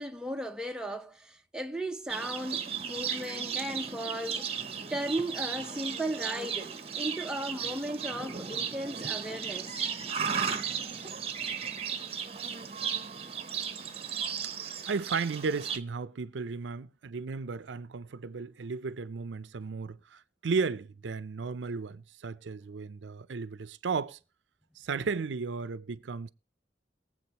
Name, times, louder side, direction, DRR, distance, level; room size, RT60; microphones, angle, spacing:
voice 1, 0.0-4.5 4.9-9.7, right 1 dB, 5° right, 0.6 m, -36 dB
Livestock farm animals working animals, 2.1-15.8, right 7 dB, 35° right, 0.8 m, -35 dB
voice 2, 14.9-24.2 24.8-26.3, right 4 dB, 85° right, 0.5 m, -34 dB
22.0 x 7.6 x 2.9 m
head